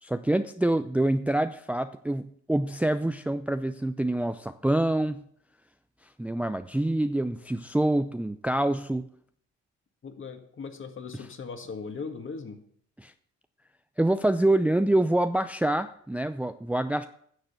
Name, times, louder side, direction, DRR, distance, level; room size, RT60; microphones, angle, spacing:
voice 1, 0.0-5.2 6.2-9.1 13.0-13.1 14.0-17.0, right 1 dB, 5° right, 10 dB, 0.5 m, -26 dB
voice 2, 10.0-12.6, left 5 dB, 40° left, 6 dB, 1.9 m, -39 dB
9.8 x 6.6 x 8.1 m, 0.62 s
cardioid pair, 90°, 30 cm